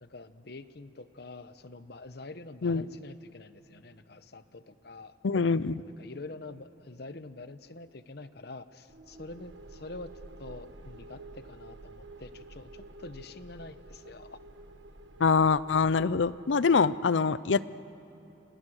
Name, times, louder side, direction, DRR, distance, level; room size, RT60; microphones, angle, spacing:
voice 1, 0.0-5.2 6.0-10.1 10.4-14.4, left 2 dB, 60° left, 12 dB, 1.0 m, -46 dB
voice 2, 5.2-5.8 15.2-17.7, left 5 dB, 90° left, 17 dB, 0.6 m, -25 dB
sound 1, 8.9-16.7, right 2 dB, 85° right, 1.3 m, -50 dB
29.5 x 27.5 x 6.5 m, 2.9 s
head